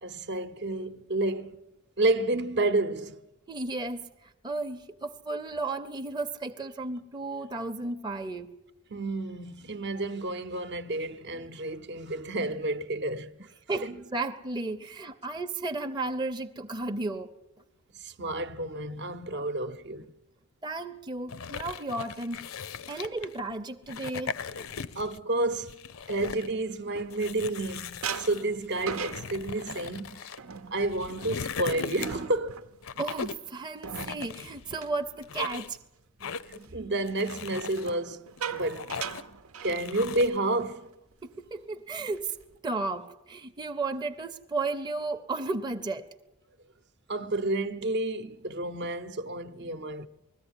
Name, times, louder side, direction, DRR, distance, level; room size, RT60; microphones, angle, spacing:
voice 1, 0.0-1.7 2.0-3.2 8.9-13.5 13.8-14.0 17.9-20.1 22.9-23.0 24.9-25.8 26.1-30.3 30.7-32.7 36.2-39.0 39.6-40.9 47.1-50.1, right 2 dB, 55° right, 0.8 m, -30 dB
voice 2, 3.5-8.5 13.7-17.3 20.6-22.5 22.9-24.4 33.0-35.8 41.2-42.3 42.6-46.1, right 3 dB, 20° right, 0.7 m, -34 dB
sound 1, 21.3-23.4 23.8-25.2 25.5-26.5 27.1-30.4 30.8-32.4 32.8-33.5 33.9-34.9 35.2-35.8 36.2-36.7 37.1-37.9 38.4-39.3 39.7-40.4, left 6 dB, 70° left, 0.6 m, -39 dB
sound 2, 26.2-27.6 28.0-35.9 36.2-36.5 37.7-40.3 40.6-40.8 41.1-41.4 41.9-42.6, right 6 dB, 85° right, 0.9 m, -41 dB
20.5 x 14.5 x 9.8 m
head